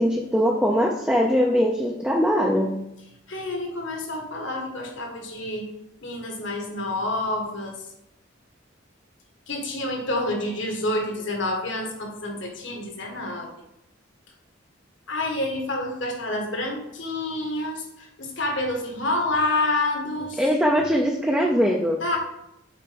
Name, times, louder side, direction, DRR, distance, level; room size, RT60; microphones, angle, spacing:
voice 1, 0.0-2.8 20.4-22.0, equal, 5° right, 0 dB, 0.6 m, -21 dB
voice 2, 3.3-5.7 6.0-7.8 9.5-13.5 15.1-20.4 22.0-22.2, left 2 dB, 65° left, 2 dB, 1.7 m, -28 dB
7.8 x 4.6 x 5.2 m, 0.83 s
head